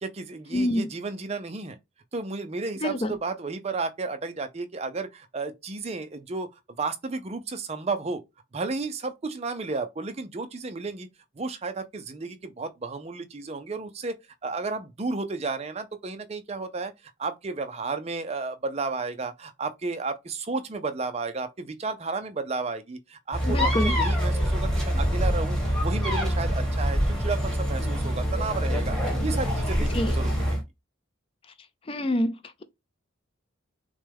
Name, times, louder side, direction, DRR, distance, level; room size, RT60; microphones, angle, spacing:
voice 1, 0.0-1.8 2.1-6.5 6.8-8.2 8.5-11.1 11.4-14.2 14.4-16.9 17.2-29.0 29.2-30.6, right 3 dB, 30° right, 0.5 m, -32 dB
voice 2, 0.5-0.8 2.8-3.2 23.4-23.9 29.9-30.1 31.9-32.6, left 1 dB, 25° left, 0.4 m, -26 dB
sound 1, 23.3-30.6, equal, 5° left, 1.6 m, -25 dB
6.2 x 2.2 x 3.4 m
head